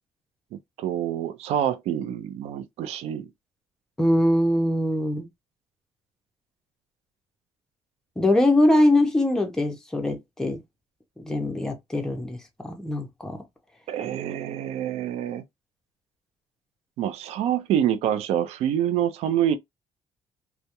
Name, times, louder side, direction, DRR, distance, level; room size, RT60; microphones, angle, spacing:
voice 1, 0.8-3.3 13.9-15.4 17.0-19.6, right 10 dB, 90° right, 0.4 m, -26 dB
voice 2, 4.0-5.3 8.2-10.6 11.2-13.4, left 1 dB, 5° left, 0.5 m, -22 dB
2.2 x 2.0 x 2.8 m
cardioid pair, 175°, 10 cm